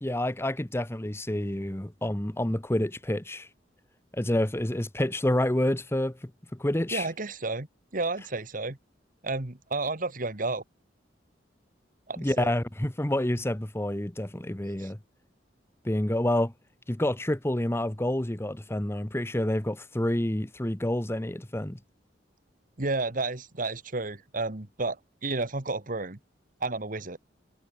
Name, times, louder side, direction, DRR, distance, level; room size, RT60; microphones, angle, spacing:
voice 1, 0.0-3.5 4.1-6.3 6.6-7.1 12.2-15.0 15.8-16.5 16.9-21.8, left 1 dB, 15° left, 1.0 m, -28 dB
voice 2, 6.9-7.7 7.9-8.8 9.2-10.6 12.1-12.5 14.8-14.9 22.8-26.2 26.6-27.2, right 3 dB, 50° right, 1.8 m, -31 dB
head